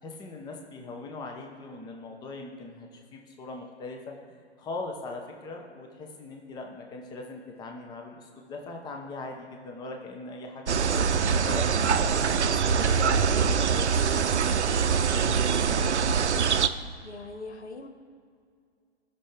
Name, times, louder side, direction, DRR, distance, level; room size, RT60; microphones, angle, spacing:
voice 1, 0.0-4.1 4.6-11.1 11.4-14.0, left 3 dB, 10° left, 2 dB, 0.8 m, -40 dB
sound 1, 10.7-16.7, right 6 dB, 85° right, 0.6 m, -24 dB
voice 2, 15.1-16.2 17.0-17.9, left 3 dB, 80° left, 5 dB, 1.4 m, -42 dB
16.5 x 5.9 x 3.3 m, 2.2 s
hypercardioid pair, 130°, 33 cm